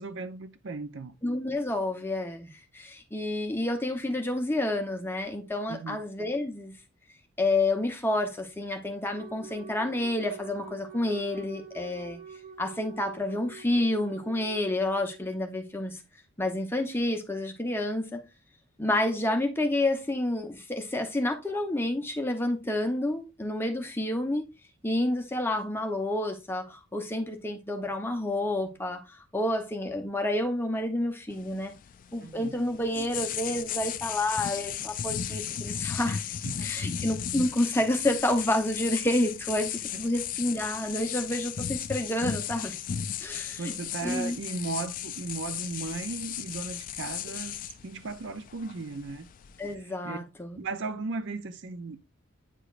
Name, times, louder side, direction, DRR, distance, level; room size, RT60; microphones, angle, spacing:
voice 1, 0.0-1.2 5.7-6.0 32.2-32.6 36.4-36.7 39.9-40.0 43.2-49.3 49.8-50.2 50.6-52.0, right 3 dB, 55° right, 0.5 m, -36 dB
voice 2, 1.2-6.7 7.4-12.2 12.6-16.0 16.4-18.2 18.8-24.5 24.8-31.7 32.1-42.8 43.2-43.7 44.0-44.4 49.6-50.6, left 1 dB, 10° left, 0.8 m, -29 dB
Wind instrument woodwind instrument, 9.1-15.2, right 6 dB, 30° right, 1.3 m, -46 dB
sound 1, 31.3-49.7, left 9 dB, 40° left, 0.3 m, -36 dB
9.0 x 4.9 x 2.5 m
head